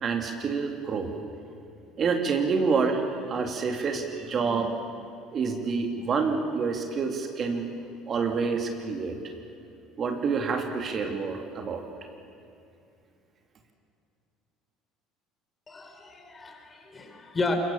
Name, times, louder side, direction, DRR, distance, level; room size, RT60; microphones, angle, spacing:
voice 1, 0.0-1.2 2.0-3.0 3.3-4.8 5.3-7.7 8.1-9.2 10.0-11.8, right 5 dB, 40° right, 4 dB, 2.7 m, -27 dB
voice 2, 15.7-17.6, left 3 dB, 25° left, 4 dB, 4.8 m, -32 dB
26.5 x 23.0 x 7.2 m, 2.6 s
hypercardioid pair, 65°, 0 cm